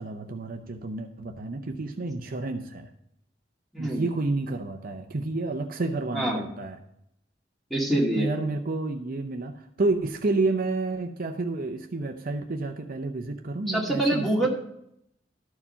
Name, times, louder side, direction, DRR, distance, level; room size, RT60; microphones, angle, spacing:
voice 1, 0.0-2.9 3.8-6.8 8.2-14.5, right 2 dB, 50° right, 5 dB, 0.7 m, -30 dB
voice 2, 7.7-8.3 13.7-14.5, right 1 dB, ahead, -3 dB, 2.1 m, -25 dB
12.5 x 4.8 x 5.5 m, 0.76 s
head